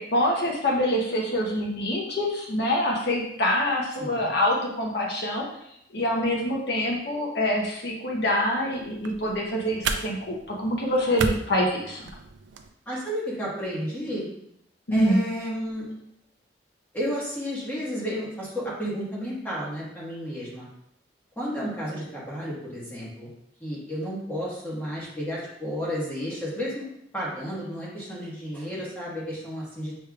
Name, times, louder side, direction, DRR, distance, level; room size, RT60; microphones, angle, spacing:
voice 1, 0.0-5.4 5.9-12.0 14.9-15.2, equal, 65° left, -2 dB, 0.9 m, -25 dB
sound 1, 8.7-12.7, right 4 dB, 85° right, 0.4 m, -34 dB
voice 2, 12.8-14.2 14.9-15.9 16.9-20.7 21.4-23.3 23.6-26.8 27.1-29.9, equal, 10° left, -7 dB, 1.4 m, -32 dB
6.3 x 3.2 x 2.4 m, 0.75 s
head